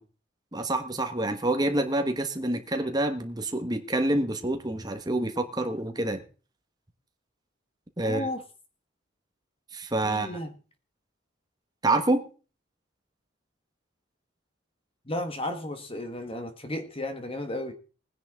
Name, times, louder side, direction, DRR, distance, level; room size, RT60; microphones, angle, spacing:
voice 1, 0.5-6.2 8.0-8.3 9.7-10.3 11.8-12.2, right 2 dB, 20° right, 7 dB, 1.4 m, -27 dB
voice 2, 8.0-8.4 10.0-10.6 15.0-17.7, left 1 dB, 30° left, 7 dB, 1.3 m, -34 dB
19.5 x 10.0 x 3.7 m, 0.36 s
head